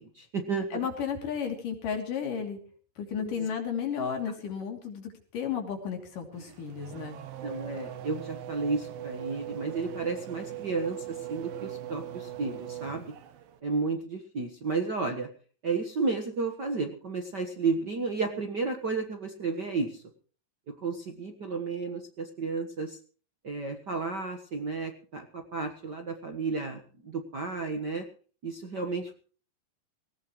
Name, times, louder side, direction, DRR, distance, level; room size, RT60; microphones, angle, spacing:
voice 1, 0.0-0.9 3.2-3.5 7.4-13.1 13.6-15.3 15.6-20.0 20.8-23.0 23.4-28.0 28.4-29.1, right 4 dB, 45° right, 5 dB, 1.4 m, -32 dB
voice 2, 0.7-2.6 3.0-7.2, left 7 dB, 75° left, 4 dB, 4.5 m, -33 dB
Race car auto racing / Accelerating revving vroom, 6.3-13.6, right 12 dB, 90° right, 3.0 m, -41 dB
19.0 x 18.5 x 3.1 m, 0.41 s
omnidirectional pair, 3.9 m